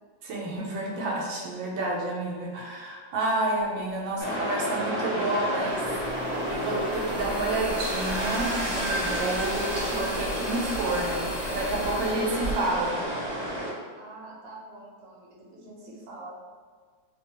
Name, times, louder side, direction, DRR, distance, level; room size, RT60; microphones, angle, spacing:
voice 1, 0.2-13.0, right 2 dB, 85° right, -1 dB, 1.3 m, -30 dB
sound 1, 4.2-4.3 5.6-13.6, right 1 dB, 55° left, 0.8 m, -38 dB
sound 2, 4.2-13.7, equal, 30° right, 0.7 m, -30 dB
voice 2, 13.9-16.3, right 2 dB, 65° right, -4 dB, 0.9 m, -45 dB
3.0 x 2.2 x 2.8 m, 1.5 s
omnidirectional pair, 2.1 m